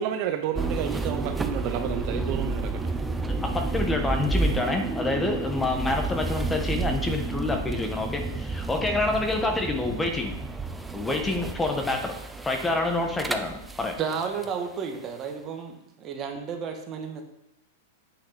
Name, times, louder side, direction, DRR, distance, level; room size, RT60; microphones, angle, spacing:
voice 1, 0.0-2.7, right 9 dB, 50° right, 6 dB, 0.7 m, -30 dB
sound 1, 0.5-14.5, right 3 dB, 10° right, 0.6 m, -31 dB
voice 2, 3.7-10.4 10.9-12.1 12.4-14.0, left 2 dB, 10° left, 4 dB, 1.3 m, -27 dB
voice 3, 14.0-17.2, right 6 dB, 30° right, 4 dB, 1.5 m, -32 dB
8.3 x 6.3 x 4.0 m, 0.81 s
hypercardioid pair, 125°, 0 cm